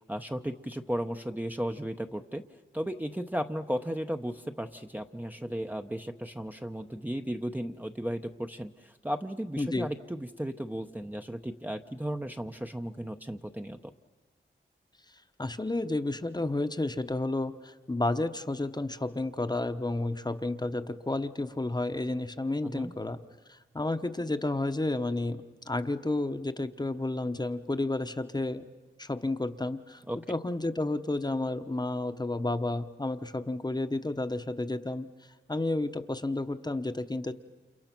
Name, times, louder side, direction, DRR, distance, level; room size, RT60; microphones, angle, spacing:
voice 1, 0.1-2.4 2.7-13.8 22.6-22.9 30.1-30.2, equal, 10° right, 4 dB, 0.8 m, -35 dB
voice 2, 9.6-9.9 15.4-23.2 23.5-28.6 29.0-30.0 30.3-35.1 35.5-37.3, left 2 dB, 20° left, 9 dB, 1.0 m, -31 dB
29.5 x 28.5 x 6.0 m, 1.3 s
wide cardioid pair, 90°, 20 cm